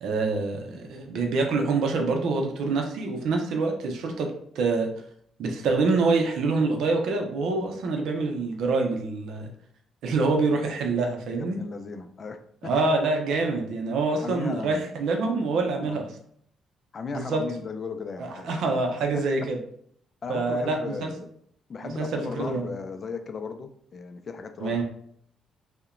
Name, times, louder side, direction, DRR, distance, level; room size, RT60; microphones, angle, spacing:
voice 1, 0.0-4.3 4.6-4.9 5.4-9.5 10.0-11.6 12.6-16.1 17.1-17.4 18.2-19.6 20.3-21.1 22.0-22.6 24.6-24.8, right 3 dB, 80° right, 3 dB, 0.5 m, -26 dB
voice 2, 11.3-12.9 14.2-14.8 15.8-16.1 16.9-18.5 19.1-19.5 20.2-21.3 21.7-24.8, left 5 dB, 45° left, 7 dB, 0.3 m, -36 dB
2.7 x 2.1 x 2.4 m, 0.65 s
cardioid pair, 90°, 0 cm